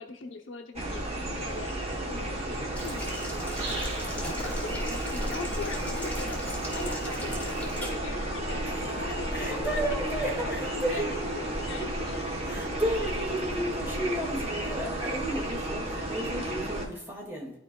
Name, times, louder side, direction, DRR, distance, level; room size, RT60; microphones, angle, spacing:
voice 1, 0.0-9.8 10.2-11.0 11.3-12.3, left 3 dB, 75° left, 3 dB, 0.8 m, -41 dB
sound 1, 0.8-16.9, right 1 dB, 30° right, 1.0 m, -32 dB
Boiling, 2.7-7.9, left 1 dB, 10° left, 1.9 m, -39 dB
Wind instrument woodwind instrument, 7.8-12.2, left 4 dB, 55° left, 1.0 m, -46 dB
voice 2, 9.3-11.1 12.5-17.5, equal, 10° right, -3 dB, 1.9 m, -33 dB
12.5 x 4.6 x 2.3 m, 0.85 s
head